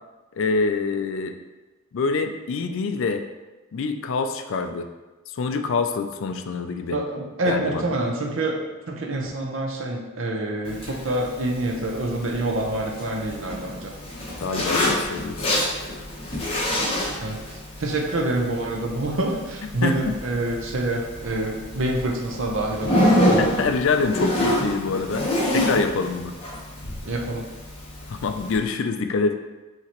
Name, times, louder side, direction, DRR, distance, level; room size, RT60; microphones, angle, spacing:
voice 1, 0.4-1.4 1.9-3.2 3.7-4.9 5.3-7.0 7.5-7.9 14.4-15.5 19.8-20.1 23.4-26.4 28.1-29.4, left 4 dB, 60° left, 7 dB, 0.3 m, -25 dB
voice 2, 6.9-13.9 17.2-17.4 17.8-23.3 27.0-27.5, right 1 dB, 65° right, 0 dB, 0.7 m, -27 dB
Zipper (clothing), 10.6-28.6, left 1 dB, 25° left, 0.9 m, -27 dB
5.7 x 2.9 x 2.9 m, 1.2 s
head